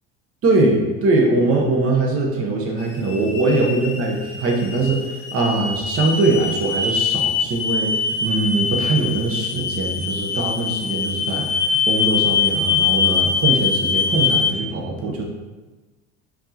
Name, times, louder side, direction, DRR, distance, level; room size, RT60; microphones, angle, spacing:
voice 1, 0.4-7.9 8.2-15.2, right 2 dB, 45° right, 0 dB, 1.1 m, -21 dB
sound 1, 2.8-14.5, left 6 dB, 70° left, 0.6 m, -23 dB
4.5 x 2.7 x 2.9 m, 1.2 s
supercardioid pair, 85°, 32 cm